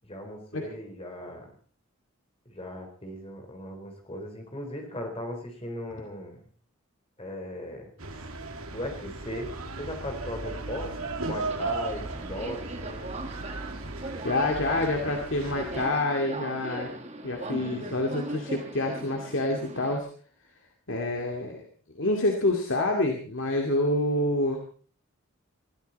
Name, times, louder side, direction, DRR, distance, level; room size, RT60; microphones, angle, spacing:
voice 1, 0.0-1.5 2.5-6.5 7.2-8.3 8.7-13.2 17.5-18.0, left 1 dB, 25° left, 4 dB, 4.1 m, -38 dB
Tangier-street workers, 8.0-15.9, right 3 dB, 90° right, 2.1 m, -36 dB
Subway metro underground, 10.4-20.0, right 2 dB, 30° right, 1.8 m, -40 dB
voice 2, 14.2-16.9 17.2-20.1 20.9-21.6 22.0-24.6, left 2 dB, 60° left, 1 dB, 2.3 m, -27 dB
21.0 x 14.0 x 4.2 m, 0.43 s
head